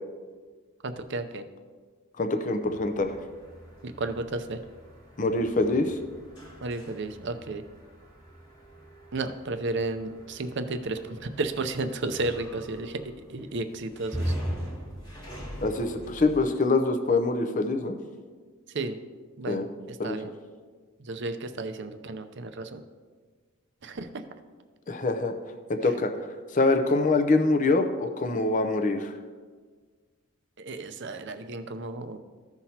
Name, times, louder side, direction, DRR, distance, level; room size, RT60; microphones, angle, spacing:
voice 1, 0.8-1.5 3.8-4.6 6.6-7.6 9.1-14.3 18.7-19.0 19.4-20.3 21.0-22.8 23.8-24.2 30.6-32.2, right 2 dB, 55° right, 9 dB, 0.6 m, -33 dB
voice 2, 2.2-3.2 5.2-6.0 15.6-18.0 19.5-19.7 20.0-20.2 24.9-25.3 25.7-29.2, left 3 dB, 35° left, 6 dB, 0.6 m, -25 dB
sound 1, 2.6-16.5, equal, 20° left, 1.5 m, -41 dB
15.0 x 5.9 x 2.8 m, 1.5 s
head